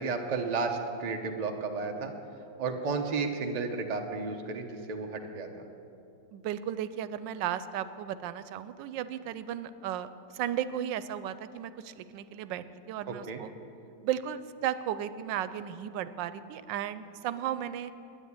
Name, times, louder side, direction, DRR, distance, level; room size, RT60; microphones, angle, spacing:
voice 1, 0.0-2.1 2.6-5.7 13.1-13.4, right 4 dB, 35° right, 3 dB, 0.7 m, -33 dB
voice 2, 6.3-13.5 14.0-17.9, right 10 dB, 90° right, 14 dB, 1.3 m, -35 dB
9.9 x 9.1 x 9.7 m, 2.7 s
omnidirectional pair, 1.9 m